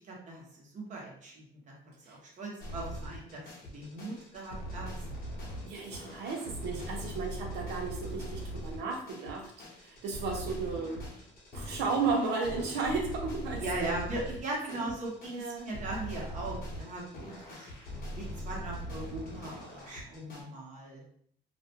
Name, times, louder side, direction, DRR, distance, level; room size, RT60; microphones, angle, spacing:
voice 1, 0.0-1.7 2.1-3.4 3.7-4.9 13.5-17.7 18.2-21.0, right 2 dB, 45° right, -2 dB, 0.9 m, -39 dB
sound 1, 2.6-20.4, equal, 55° left, 0.9 m, -41 dB
voice 2, 5.6-9.5 9.8-11.0 11.5-13.9 14.7-14.9 15.3-15.7, right 4 dB, 85° right, 0 dB, 0.7 m, -34 dB
2.5 x 2.1 x 2.8 m, 0.64 s
cardioid pair, 110°, 17 cm